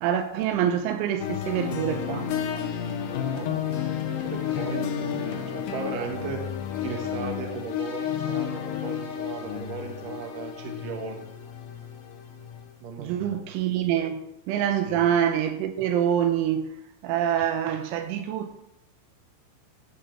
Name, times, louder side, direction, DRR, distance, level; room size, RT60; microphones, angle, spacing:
voice 1, 0.0-2.3 13.0-16.7 17.0-18.6, right 9 dB, 85° right, 3.0 m, -26 dB
sound 1, 1.2-12.7, left 8 dB, 85° left, 2.0 m, -31 dB
voice 2, 3.3-6.4 6.8-11.3 12.8-13.4 14.8-15.0, right 5 dB, 60° right, 2.3 m, -37 dB
15.0 x 5.4 x 4.4 m
omnidirectional pair, 5.7 m